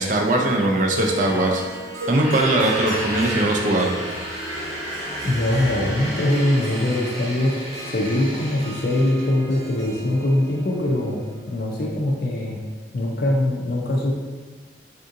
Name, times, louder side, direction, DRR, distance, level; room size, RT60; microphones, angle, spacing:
voice 1, 0.0-1.6 2.1-3.9, right 2 dB, 40° right, 1 dB, 0.4 m, -20 dB
Harp, 0.9-12.2, equal, 85° right, 0.7 m, -36 dB
sound 1, 2.0-9.3, equal, 15° right, 0.8 m, -32 dB
voice 2, 5.2-7.6 7.9-12.6 12.9-14.1, left 1 dB, 50° left, -2 dB, 0.4 m, -22 dB
3.5 x 2.7 x 2.5 m, 1.4 s
head